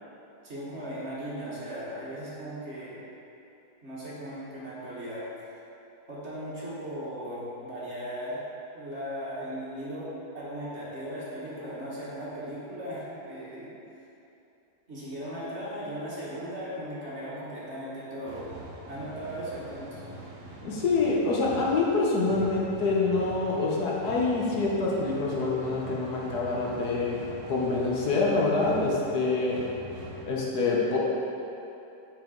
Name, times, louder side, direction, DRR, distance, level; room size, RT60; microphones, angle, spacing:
voice 1, 0.4-3.0 3.8-5.3 6.1-8.4 8.7-13.7 14.9-18.5 18.9-20.0, equal, 45° right, -8 dB, 1.8 m, -37 dB
sound 1, 18.2-30.3, right 1 dB, 60° right, 1.4 m, -44 dB
voice 2, 20.6-27.2 27.5-29.6 30.3-31.0, left 3 dB, 75° left, -4 dB, 1.6 m, -26 dB
7.1 x 6.0 x 3.9 m, 2.8 s
omnidirectional pair, 1.8 m